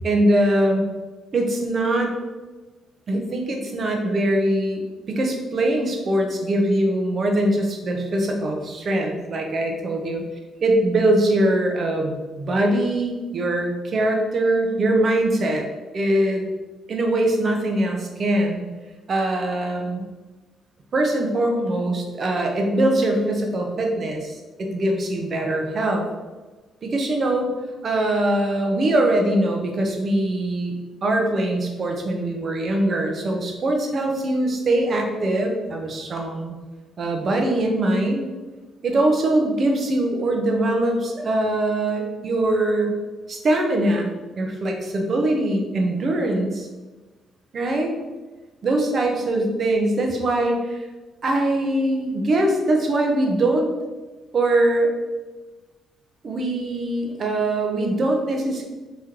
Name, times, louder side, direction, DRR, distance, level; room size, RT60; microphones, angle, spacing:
voice 1, 0.0-0.9 1.3-2.1 3.1-4.8 5.1-10.2 10.6-15.6 15.9-16.4 16.9-18.6 19.1-20.0 20.9-26.1 26.8-27.5 27.8-30.8 31.0-36.6 37.0-38.3 38.8-42.9 43.3-46.7 47.5-47.9 48.6-50.9 51.2-53.7 54.3-54.9 56.2-58.6, right 1 dB, 50° right, 2 dB, 0.7 m, -22 dB
3.0 x 3.0 x 3.7 m, 1.2 s
cardioid pair, 90°, 0 cm